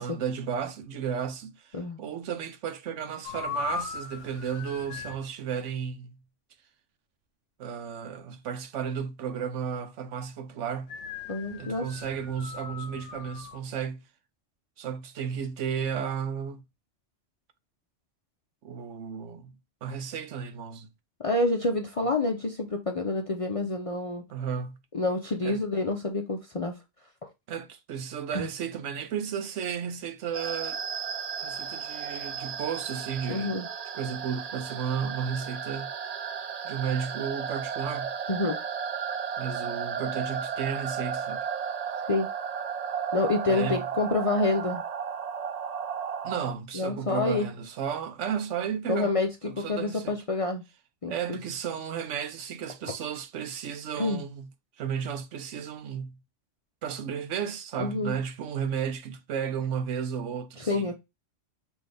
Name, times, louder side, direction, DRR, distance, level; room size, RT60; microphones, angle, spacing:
voice 1, 0.0-6.2 7.6-11.0 11.6-14.0 14.8-16.6 18.6-19.5 19.8-20.9 24.3-24.8 25.4-25.6 27.5-30.8 31.4-33.5 33.9-35.9 36.6-38.1 39.4-41.4 43.5-43.9 46.2-49.2 49.4-50.2 51.1-54.5 54.8-56.2 56.8-60.9, right 7 dB, 80° right, 1.0 m, -33 dB
sound 1, 3.2-5.2 10.9-13.6, left 6 dB, 75° left, 1.1 m, -38 dB
voice 2, 11.3-11.9 21.2-24.2 24.9-26.8 28.3-28.5 33.3-33.7 38.3-38.6 42.1-42.3 43.1-44.8 46.7-47.5 48.9-50.6 51.0-51.4 54.0-54.2 57.8-58.1 60.6-61.0, left 2 dB, 45° left, 0.5 m, -28 dB
sound 2, 30.3-46.5, right 7 dB, 60° right, 0.4 m, -34 dB
5.8 x 2.6 x 3.3 m
omnidirectional pair, 1.3 m